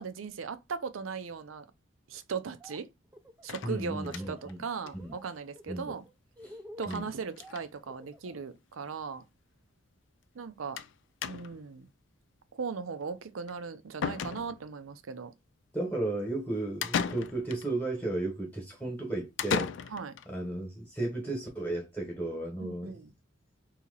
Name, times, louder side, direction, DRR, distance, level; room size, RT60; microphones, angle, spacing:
voice 1, 0.0-1.6 2.1-2.9 3.4-6.0 6.8-9.2 10.3-10.8 11.3-11.9 12.5-15.3 19.9-20.1 22.6-23.1, right 5 dB, 90° right, 0.5 m, -38 dB
Laughter, 2.4-2.8 3.1-4.5 4.8-5.2 5.5-8.4, left 1 dB, 10° right, 0.4 m, -49 dB
sound 1, 3.5-4.5 4.9-5.0 5.2-5.3 5.6-5.7 6.8-7.1 7.3-7.7 8.6-8.7 8.9-9.0 10.8-10.9 11.2-11.7 13.5-13.6 14.0-14.8 16.8-17.7 19.4-20.3, left 6 dB, 65° left, 0.3 m, -35 dB
voice 2, 3.6-4.6 4.9-5.1 5.7-5.9 6.4-6.6 6.9-7.1 15.7-19.7 20.3-23.0, right 2 dB, 10° left, 1.1 m, -34 dB
2.9 x 2.8 x 3.9 m
head